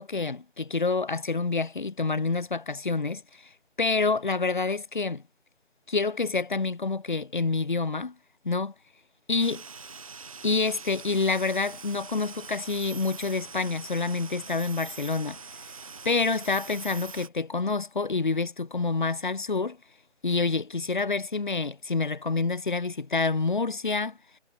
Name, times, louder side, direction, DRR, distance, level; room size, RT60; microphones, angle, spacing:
voice 1, 0.0-3.5 3.8-5.2 5.9-8.1 8.4-8.7 9.3-9.6 10.4-15.4 16.0-19.8 20.2-24.2, left 4 dB, 40° left, 1.7 m, -27 dB
sound 1, 9.4-17.3, right 5 dB, 25° right, 2.4 m, -43 dB
figure-of-eight pair, 165°, 37 cm